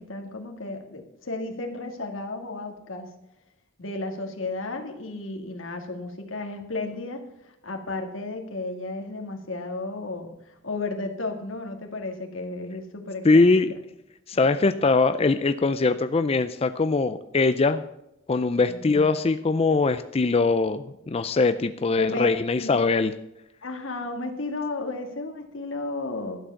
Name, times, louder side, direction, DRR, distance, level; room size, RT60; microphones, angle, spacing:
voice 1, 0.0-3.1 3.8-7.2 7.6-13.5 14.3-14.4 18.7-19.1 22.0-22.3 22.6-22.7 23.6-26.4, left 2 dB, 85° left, 3 dB, 2.1 m, -33 dB
voice 2, 13.2-13.7 14.3-17.8 18.3-23.1, left 3 dB, 30° left, 11 dB, 0.4 m, -22 dB
12.0 x 7.8 x 7.0 m, 0.85 s
head